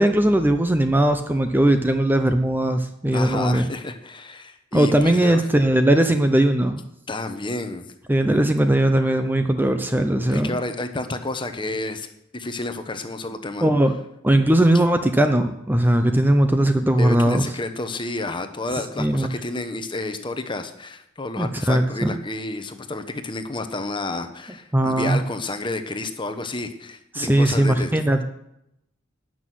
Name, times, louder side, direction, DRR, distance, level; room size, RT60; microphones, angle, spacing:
voice 1, 0.0-3.7 4.7-6.8 8.1-10.6 13.6-13.9 14.2-17.5 19.0-19.3 21.4-22.1 24.7-25.2 27.1-28.2, right 1 dB, 10° right, 7 dB, 0.7 m, -19 dB
voice 2, 3.1-5.4 7.1-7.9 10.3-12.1 12.3-13.7 16.9-27.9, left 2 dB, 25° left, 8 dB, 1.0 m, -30 dB
12.0 x 6.3 x 9.3 m, 0.82 s
head